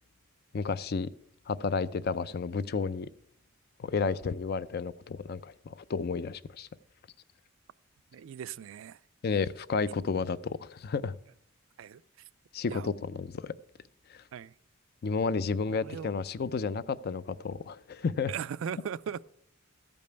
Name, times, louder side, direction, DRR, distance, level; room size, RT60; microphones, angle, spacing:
voice 1, 0.5-1.1 1.5-3.1 3.8-6.7 9.2-11.1 12.5-13.5 14.1-14.2 15.0-18.3, left 4 dB, 50° left, 0.4 m, -32 dB
voice 2, 8.1-9.0 11.8-12.0 12.7-12.9 14.3-14.5 15.6-16.1 18.3-19.2, right 8 dB, 70° right, 0.3 m, -38 dB
14.0 x 5.3 x 6.7 m
head